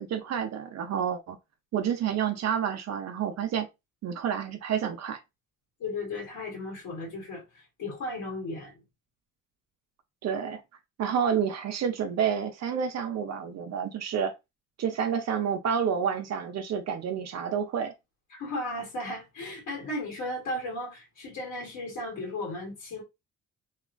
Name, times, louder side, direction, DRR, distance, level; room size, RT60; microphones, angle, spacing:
voice 1, 0.0-1.4 1.7-3.7 4.0-5.2 10.2-10.6 11.0-14.3 14.8-17.9, right 7 dB, 60° right, 0.6 m, -29 dB
voice 2, 5.8-8.8 18.3-23.0, left 1 dB, 80° left, 1.6 m, -35 dB
2.9 x 2.3 x 2.4 m
cardioid pair, 90°, 30 cm